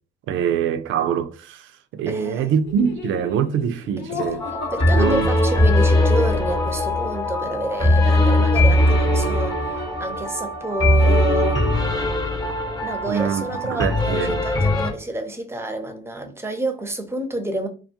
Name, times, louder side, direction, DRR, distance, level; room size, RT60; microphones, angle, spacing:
voice 1, 0.3-4.4 4.9-5.3 13.1-14.4, right 7 dB, 80° right, 0.4 m, -24 dB
voice 2, 2.1-2.5 4.1-4.2 4.7-11.7 12.8-17.7, right 1 dB, 10° right, 0.6 m, -28 dB
Laughter, 2.6-6.3, left 5 dB, 65° left, 0.8 m, -35 dB
sound 1, 4.4-14.9, left 1 dB, 20° left, 0.8 m, -20 dB
2.4 x 2.3 x 2.7 m
cardioid pair, 90°, 20 cm